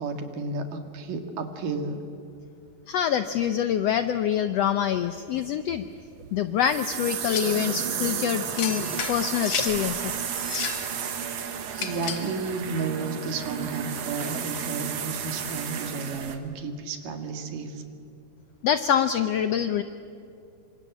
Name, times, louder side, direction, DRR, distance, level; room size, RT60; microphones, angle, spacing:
voice 1, 0.0-2.0 11.7-17.8, right 3 dB, 80° right, 6 dB, 3.6 m, -32 dB
voice 2, 2.9-5.8 6.3-10.1 18.6-19.8, left 9 dB, 80° left, 10 dB, 1.4 m, -25 dB
sound 1, 5.2-16.4, right 7 dB, 55° right, 2.4 m, -32 dB
sound 2, 7.3-7.6 8.6-9.8 10.4-10.9 11.7-12.3, left 7 dB, 50° left, 2.7 m, -32 dB
27.0 x 25.0 x 8.5 m, 2.5 s
omnidirectional pair, 3.8 m